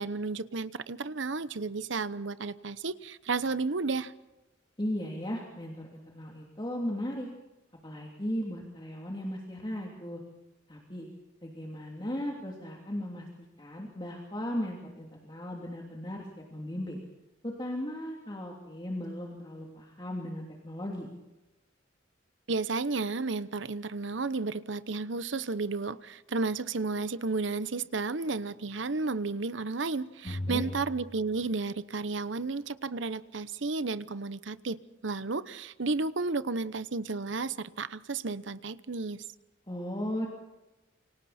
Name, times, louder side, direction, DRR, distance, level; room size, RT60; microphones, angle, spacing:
voice 1, 0.0-4.1 22.5-34.8 35.0-39.2, right 3 dB, 70° right, 0.9 m, -32 dB
voice 2, 4.8-7.3 7.8-10.2 10.7-11.1 11.4-17.0 17.4-21.1 30.2-30.6 39.7-40.3, equal, 25° left, 3.1 m, -36 dB
sound 1, 30.3-32.1, left 1 dB, 60° left, 5.7 m, -38 dB
29.0 x 25.0 x 4.4 m
head